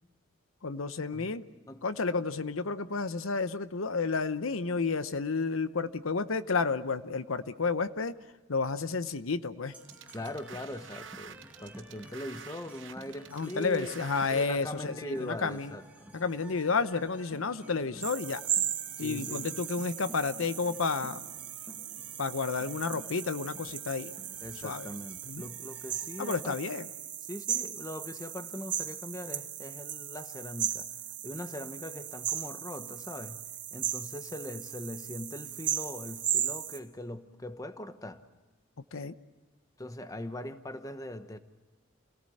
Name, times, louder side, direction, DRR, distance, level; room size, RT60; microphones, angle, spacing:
voice 1, 0.6-1.5 1.8-8.1 8.5-9.7 13.3-15.7 16.1-18.4 19.0-21.2 22.2-24.1 24.6-24.9 25.2-25.5 26.2-26.9 38.9-39.1, left 4 dB, 80° left, 12 dB, 0.9 m, -31 dB
sound 1, 9.7-26.5, right 1 dB, 5° right, 1.9 m, -53 dB
sound 2, 9.8-14.5, right 8 dB, 65° right, 1.0 m, -48 dB
voice 2, 10.1-16.1 19.0-19.5 24.4-26.6 27.3-30.9 31.2-33.4 33.7-38.2 39.8-41.4, left 1 dB, 15° left, 10 dB, 1.0 m, -41 dB
sound 3, 18.0-36.8, right 10 dB, 40° right, 2.3 m, -37 dB
28.5 x 18.0 x 7.8 m, 1.3 s
head